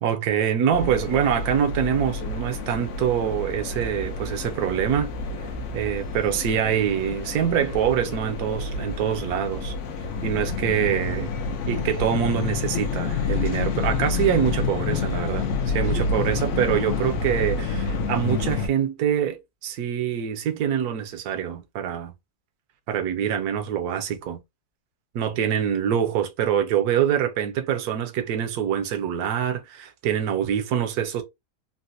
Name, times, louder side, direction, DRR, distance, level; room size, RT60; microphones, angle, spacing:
voice 1, 0.0-5.1 5.7-9.7 10.2-11.3 11.7-22.1 22.9-24.4 25.1-31.2, right 9 dB, 70° right, 1.1 m, -25 dB
sound 1, 0.7-18.7, left 4 dB, 65° left, 0.8 m, -28 dB
4.0 x 2.1 x 2.6 m
omnidirectional pair, 1.8 m